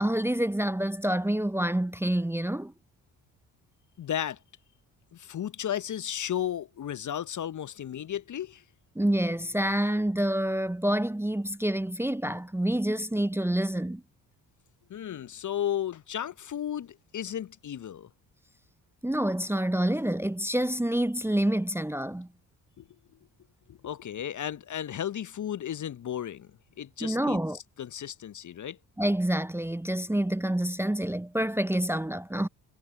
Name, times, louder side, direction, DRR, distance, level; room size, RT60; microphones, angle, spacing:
voice 1, 0.0-2.7 8.9-14.0 19.0-22.3 27.0-27.6 29.0-32.5, right 1 dB, 5° right, 1.0 m, -27 dB
voice 2, 4.0-4.4 5.1-8.6 14.9-18.1 22.8-22.9 23.7-26.5 26.8-27.4 27.8-28.8, left 10 dB, 40° left, 1.2 m, -34 dB
figure-of-eight pair, 45°, 47 cm